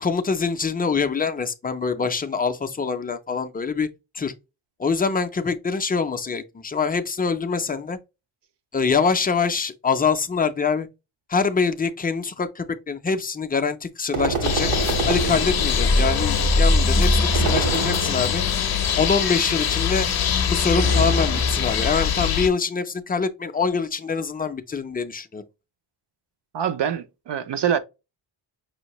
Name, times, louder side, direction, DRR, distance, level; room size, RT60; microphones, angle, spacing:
voice 1, 0.0-3.9 4.1-4.3 4.8-8.0 8.7-10.9 11.3-14.7 15.1-18.4 19.0-20.1 20.5-25.4, left 5 dB, 20° left, 0.3 m, -24 dB
sound 1, 14.1-16.1 17.3-18.6 20.8-21.8, right 4 dB, 85° right, 1.1 m, -28 dB
sound 2, 14.4-22.5, left 5 dB, 50° left, 0.6 m, -22 dB
voice 2, 26.5-27.8, right 9 dB, 60° right, 0.5 m, -24 dB
5.6 x 2.5 x 2.9 m
wide cardioid pair, 170°, 49 cm